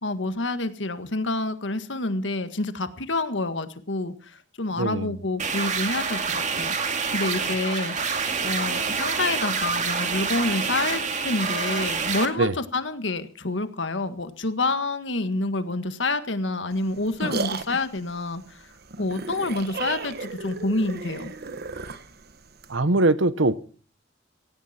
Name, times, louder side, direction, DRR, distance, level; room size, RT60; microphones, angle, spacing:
voice 1, 0.0-8.0 8.4-18.7 19.0-21.3, left 2 dB, 70° left, 1.7 m, -28 dB
voice 2, 4.8-5.1 12.4-12.5 22.7-23.6, right 2 dB, 90° right, 1.1 m, -21 dB
sound 1, 5.4-12.3, right 5 dB, 40° right, 2.3 m, -27 dB
sound 2, 16.7-22.8, right 3 dB, 55° right, 1.3 m, -34 dB
18.0 x 16.5 x 4.4 m
head